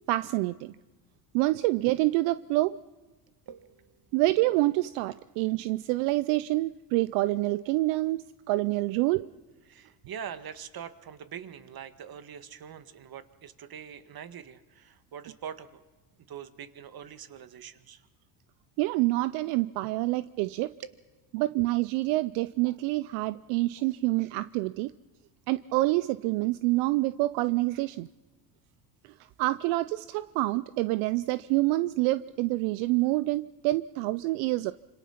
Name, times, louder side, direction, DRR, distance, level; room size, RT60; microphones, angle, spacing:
voice 1, 0.1-0.7 1.3-2.8 4.1-9.3 18.8-20.7 21.3-24.9 25.5-28.1 29.4-34.7, right 19 dB, 75° right, 15 dB, 0.7 m, -27 dB
voice 2, 3.5-4.1 9.7-15.8 16.3-18.0, right 8 dB, 45° right, 11 dB, 1.8 m, -43 dB
26.5 x 25.5 x 5.9 m, 1.2 s
supercardioid pair, 75°, 50 cm